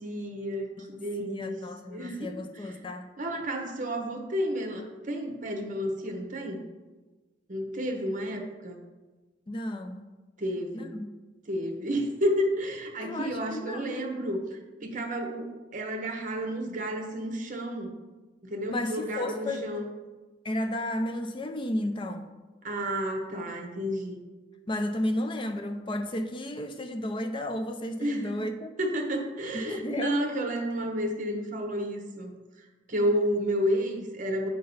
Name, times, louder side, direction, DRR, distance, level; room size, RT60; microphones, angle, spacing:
voice 1, 0.0-1.6 1.9-2.3 2.5-2.8 3.2-6.6 7.5-8.8 10.4-10.9 11.5-17.9 18.4-19.9 22.6-24.2 28.0-28.4 28.8-32.3 32.6-34.5, equal, 45° right, 3 dB, 1.1 m, -31 dB
voice 2, 1.2-3.1 9.5-10.1 10.7-11.1 13.0-14.1 18.7-19.7 20.4-22.3 24.7-28.7 29.6-30.2, left 1 dB, 25° left, 6 dB, 0.4 m, -33 dB
8.5 x 3.8 x 5.4 m, 1.2 s
head